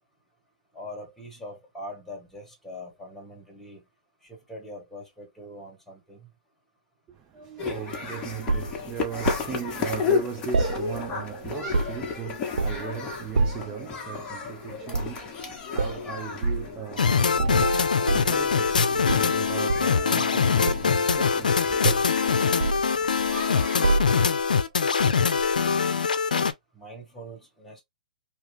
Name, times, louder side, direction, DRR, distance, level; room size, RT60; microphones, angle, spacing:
voice 1, 0.7-3.8 4.2-6.3 26.7-27.8, left 1 dB, 5° left, 1.4 m, -42 dB
voice 2, 7.1-22.0, right 8 dB, 20° right, 0.6 m, -37 dB
sound 1, 7.6-24.3, left 5 dB, 20° left, 1.0 m, -34 dB
sound 2, 8.5-9.5 10.5-11.3 11.6-12.1 12.6-12.9 13.4-13.8 14.9-15.2 15.7-16.0 16.4-16.7 17.3-18.8 19.1-20.0 20.7-21.5 21.8-22.2 22.6-23.4 23.8-24.4 25.4-25.6, right 3 dB, 80° right, 0.4 m, -27 dB
sound 3, 17.0-26.5, left 5 dB, 80° left, 0.5 m, -23 dB
2.9 x 2.3 x 3.3 m
hypercardioid pair, 130°, 4 cm